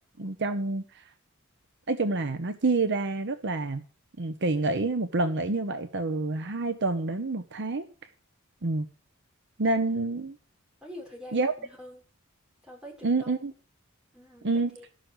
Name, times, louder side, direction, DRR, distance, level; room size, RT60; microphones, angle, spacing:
voice 1, 0.2-1.0 1.9-3.8 4.2-7.9 8.6-8.9 9.6-10.4 11.3-11.5 13.0-13.5 14.4-14.8, right 3 dB, 55° right, 0.9 m, -28 dB
voice 2, 10.8-12.0 12.6-13.4 14.1-14.8, equal, 5° right, 6.4 m, -45 dB
13.0 x 6.4 x 8.1 m
head